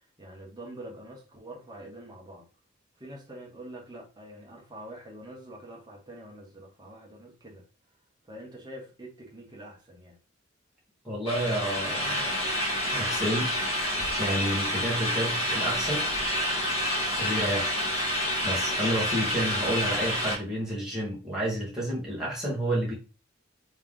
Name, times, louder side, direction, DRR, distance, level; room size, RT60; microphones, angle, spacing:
voice 1, 0.2-2.5 3.0-7.6 8.3-10.2, right 1 dB, 20° right, 1.4 m, -45 dB
voice 2, 11.0-12.4 12.9-13.5 14.2-16.0 17.2-17.7 18.4-22.9, right 1 dB, 5° right, 1.6 m, -30 dB
sound 1, 11.3-20.4, equal, 30° left, 1.4 m, -28 dB
3.3 x 3.3 x 3.7 m
head